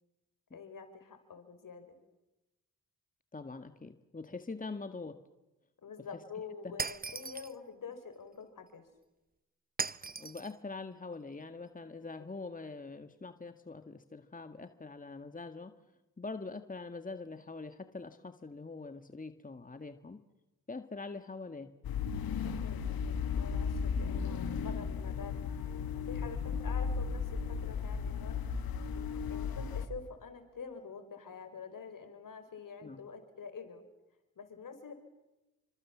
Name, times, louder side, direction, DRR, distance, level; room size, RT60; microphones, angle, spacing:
voice 1, 0.5-2.0 5.8-8.8 22.5-25.3 26.1-28.4 28.9-33.8 34.4-34.9, left 6 dB, 60° left, 8 dB, 5.2 m, -47 dB
voice 2, 3.3-5.2 6.6-6.8 10.2-15.7 16.2-20.2 20.7-21.7 32.8-33.0, left 3 dB, 20° left, 9 dB, 1.7 m, -44 dB
Shatter, 6.8-7.6 9.8-10.5, right 4 dB, 25° right, 1.0 m, -37 dB
sound 1, 21.8-29.9, left 6 dB, 75° left, 2.1 m, -35 dB
28.5 x 25.5 x 7.3 m, 1.0 s
supercardioid pair, 50°, 36 cm